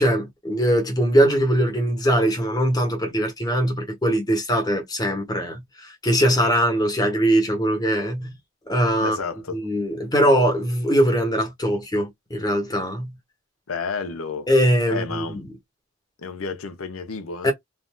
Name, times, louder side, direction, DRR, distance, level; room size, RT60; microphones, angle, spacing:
voice 1, 0.0-8.3 8.7-9.2 9.5-13.1 14.5-15.4 17.4-17.5, equal, 20° left, 1.0 m, -21 dB
voice 2, 9.0-9.6 13.7-14.5 14.9-15.4 16.2-17.5, left 5 dB, 90° left, 0.7 m, -31 dB
3.2 x 2.5 x 2.2 m
head